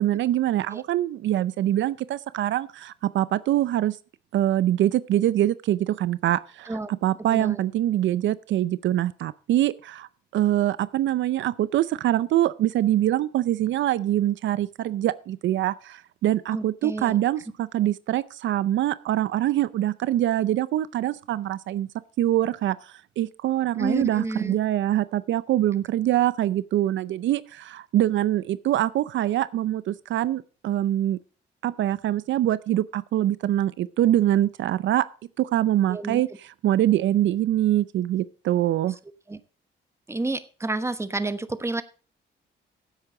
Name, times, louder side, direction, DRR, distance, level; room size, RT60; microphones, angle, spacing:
voice 1, 0.0-4.0 4.3-21.9 22.2-31.2 31.6-35.0 35.4-39.0, right 13 dB, 70° right, 0.5 m, -24 dB
voice 2, 7.3-7.6 16.5-17.2 23.7-24.6 35.9-36.2 39.3-39.4 40.1-41.8, right 2 dB, 15° right, 1.1 m, -30 dB
15.5 x 8.2 x 3.8 m
cardioid pair, 90°, 20 cm